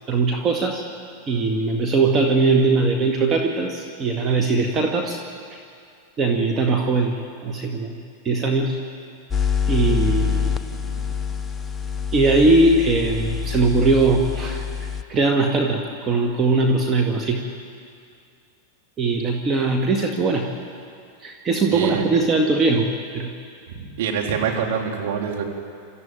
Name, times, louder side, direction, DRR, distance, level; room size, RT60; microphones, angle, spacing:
voice 1, 0.1-0.8 1.3-5.2 6.2-7.2 7.4-8.0 8.2-8.8 9.7-10.5 12.1-17.4 19.0-20.5 21.2-23.3, right 3 dB, 30° right, 3 dB, 2.1 m, -20 dB
sound 1, 9.3-15.0, left 7 dB, 15° left, 1.0 m, -25 dB
voice 2, 21.7-22.2 23.7-25.4, right 7 dB, 65° right, 0 dB, 3.6 m, -26 dB
25.5 x 14.0 x 9.1 m, 2.3 s
hypercardioid pair, 95°, 0 cm